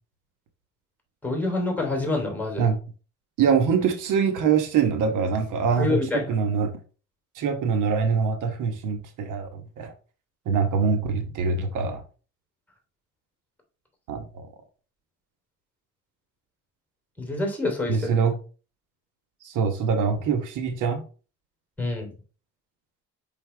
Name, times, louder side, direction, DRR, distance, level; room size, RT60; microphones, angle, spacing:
voice 1, 1.2-2.6 5.8-6.3 17.2-18.1 21.8-22.1, left 2 dB, 5° left, 3.1 m, -27 dB
voice 2, 3.4-6.7 7.3-9.9 10.4-12.0 14.1-14.5 17.9-18.4 19.4-21.0, right 6 dB, 85° right, 1.2 m, -24 dB
5.8 x 5.5 x 3.3 m
cardioid pair, 90°, 30 cm